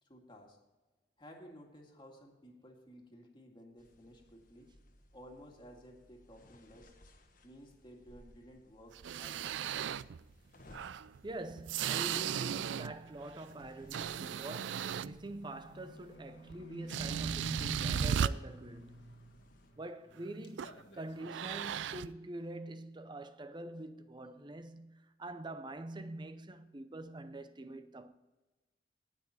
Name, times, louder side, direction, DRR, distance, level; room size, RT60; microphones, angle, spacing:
voice 1, 0.0-0.6 1.2-4.7 5.1-6.9 7.4-9.6, equal, 25° left, 2.1 m, -55 dB
sound 1, 3.8-19.7, left 1 dB, 50° left, 1.3 m, -62 dB
sound 2, 8.9-10.2 10.7-13.0 13.4-15.3 16.5-16.6 16.9-18.3 20.6-20.8 21.2-22.1, right 8 dB, 85° right, 0.4 m, -36 dB
voice 2, 11.2-19.0 19.8-28.1, right 1 dB, 25° right, 0.6 m, -45 dB
Livestock farm animals working animals, 15.4-20.2 20.4-21.1 21.6-21.7, right 1 dB, 85° left, 1.6 m, -46 dB
17.5 x 6.1 x 4.2 m
head